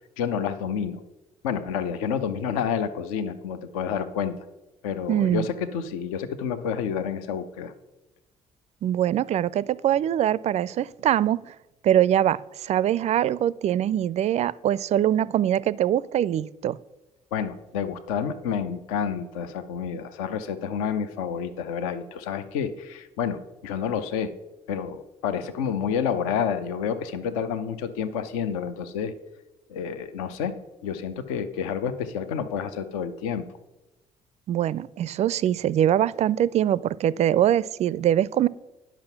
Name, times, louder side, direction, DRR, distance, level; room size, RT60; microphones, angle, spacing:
voice 1, 0.2-1.0 1.4-4.4 4.8-7.7 17.3-24.3 24.7-29.1 29.7-30.6 30.8-33.4, left 7 dB, 65° left, 11 dB, 0.6 m, -29 dB
voice 2, 5.1-5.5 8.8-11.4 11.8-16.8 34.5-38.5, right 11 dB, 35° right, 20 dB, 0.4 m, -23 dB
10.5 x 5.9 x 5.8 m, 1.0 s
figure-of-eight pair, 50°, 19 cm